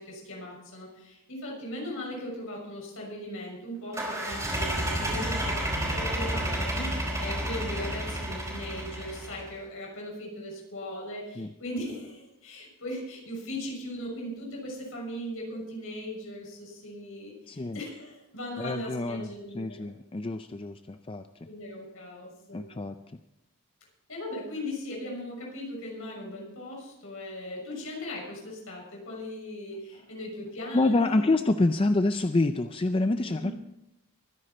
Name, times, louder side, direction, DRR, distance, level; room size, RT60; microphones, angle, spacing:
voice 1, 0.0-19.9 21.5-22.6 24.1-31.4 33.3-33.5, left 1 dB, 65° left, -1 dB, 6.7 m, -38 dB
sound 1, 3.9-9.5, right 1 dB, 15° right, 4.9 m, -31 dB
voice 2, 17.5-17.8 18.6-19.3 19.5-21.2 22.5-22.9 30.7-33.5, left 2 dB, 25° left, 8 dB, 0.4 m, -27 dB
23.0 x 10.5 x 4.4 m, 0.87 s
head